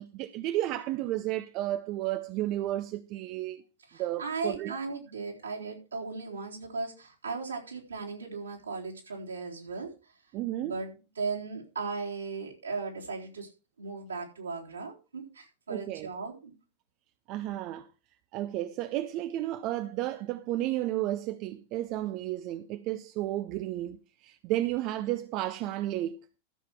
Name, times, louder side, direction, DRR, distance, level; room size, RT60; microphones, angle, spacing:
voice 1, 0.0-3.6 4.0-4.8 10.3-10.8 15.7-16.1 17.3-17.9 18.3-26.2, right 14 dB, 40° right, 0.6 m, -32 dB
voice 2, 3.9-9.9 10.6-13.5 13.8-16.5, right 4 dB, 75° right, 3.8 m, -37 dB
13.0 x 7.5 x 4.7 m
figure-of-eight pair, 90°, 0 cm